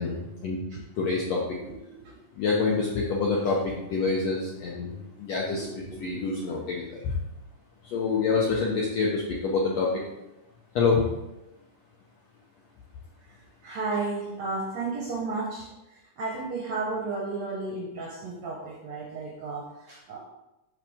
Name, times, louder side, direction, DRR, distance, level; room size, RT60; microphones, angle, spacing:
voice 1, 0.0-0.6 0.9-1.6 2.4-5.6 6.0-7.2 7.8-10.0 10.7-11.1, left 4 dB, 75° left, -3 dB, 1.5 m, -26 dB
voice 2, 1.7-2.2 3.3-3.6 5.5-6.4 13.2-20.3, right 3 dB, 70° right, -1 dB, 1.7 m, -34 dB
7.4 x 5.6 x 3.6 m, 0.95 s
omnidirectional pair, 4.2 m